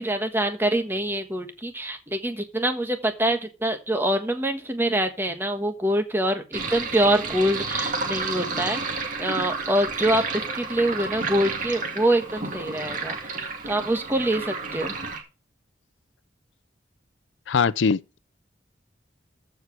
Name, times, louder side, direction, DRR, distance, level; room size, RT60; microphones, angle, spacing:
voice 1, 0.0-8.8 9.2-14.9, right 1 dB, 10° right, 1.5 m, -25 dB
Sink (filling or washing), 6.5-15.2, right 4 dB, 45° right, 2.3 m, -31 dB
voice 2, 17.5-18.2, left 5 dB, 90° left, 0.5 m, -22 dB
14.5 x 5.0 x 6.1 m
head